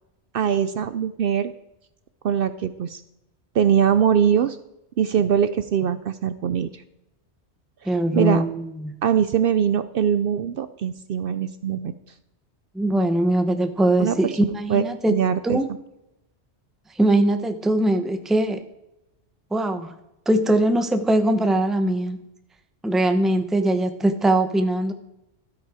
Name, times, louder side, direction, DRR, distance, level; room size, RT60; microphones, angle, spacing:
voice 1, 0.3-1.5 2.2-3.0 3.5-4.6 5.0-6.7 7.8-8.4 9.0-11.9 14.0-15.6, right 8 dB, 65° right, 13 dB, 0.7 m, -22 dB
voice 2, 7.9-8.9 12.7-15.1 15.4-15.7 17.0-18.6 19.5-19.9 20.3-22.2 22.8-24.9, right 1 dB, ahead, 8 dB, 0.7 m, -21 dB
13.0 x 8.2 x 4.8 m, 0.87 s
omnidirectional pair, 1.2 m